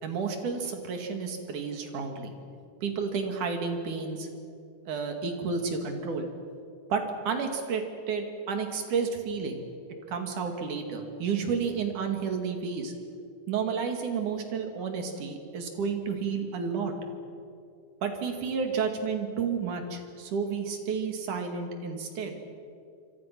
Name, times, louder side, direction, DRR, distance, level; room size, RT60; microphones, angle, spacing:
voice 1, 0.0-2.3 2.8-4.3 4.9-6.3 6.9-7.8 8.1-9.6 10.1-12.9 13.5-16.9 18.0-22.4, right 5 dB, 65° right, 5 dB, 3.7 m, -31 dB
27.0 x 25.0 x 6.1 m, 2.4 s
omnidirectional pair, 3.9 m